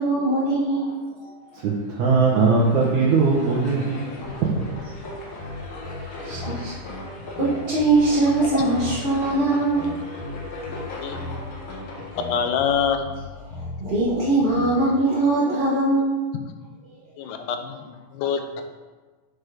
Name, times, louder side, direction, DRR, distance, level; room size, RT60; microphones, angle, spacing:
voice 1, 0.0-1.3 5.0-6.9 7.4-10.2 10.4-11.3 13.4-16.2 16.8-17.0, right 2 dB, 35° right, -7 dB, 0.7 m, -23 dB
voice 2, 1.5-4.5, right 4 dB, 75° right, -5 dB, 2.4 m, -20 dB
sound 1, 1.7-12.5, left 2 dB, 50° left, 1.8 m, -39 dB
sound 2, 5.4-15.0, left 2 dB, 75° left, 2.6 m, -37 dB
voice 3, 12.2-13.0 17.2-18.6, left 7 dB, 90° left, 6 dB, 2.3 m, -26 dB
6.7 x 6.4 x 5.0 m, 1.3 s
omnidirectional pair, 3.5 m